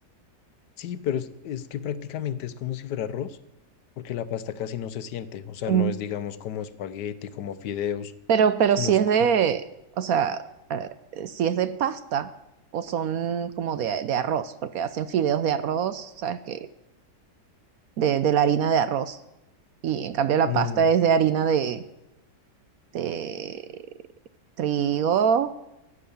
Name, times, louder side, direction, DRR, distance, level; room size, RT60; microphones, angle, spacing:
voice 1, 0.8-3.4 4.0-8.1 8.8-8.9 20.5-20.9, left 9 dB, 75° left, 14 dB, 1.3 m, -32 dB
voice 2, 8.3-9.6 10.0-10.4 10.7-12.3 12.7-16.7 18.0-19.2 19.8-21.8 22.9-23.6 24.6-25.5, right 8 dB, 65° right, 13 dB, 0.9 m, -24 dB
14.5 x 9.5 x 7.0 m, 0.93 s
omnidirectional pair, 1.8 m